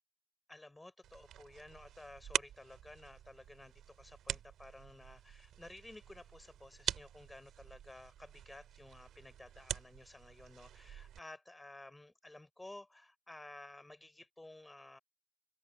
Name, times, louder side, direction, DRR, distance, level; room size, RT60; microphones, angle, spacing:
voice 1, 0.5-15.0, left 2 dB, 10° left, 6.2 m, -54 dB
sound 1, 1.0-11.2, right 11 dB, 70° right, 3.8 m, -45 dB
open air
cardioid pair, 150°, 0 cm